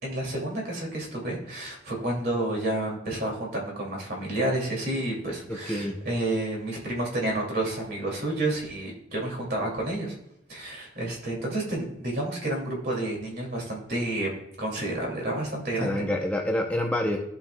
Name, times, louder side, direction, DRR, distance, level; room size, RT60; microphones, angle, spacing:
voice 1, 0.0-10.1 10.5-14.3 14.6-16.0, right 1 dB, 50° right, -1 dB, 2.4 m, -30 dB
voice 2, 5.5-6.0 15.8-17.2, left 1 dB, 5° left, 1 dB, 0.6 m, -27 dB
14.5 x 5.7 x 2.2 m, 0.81 s
head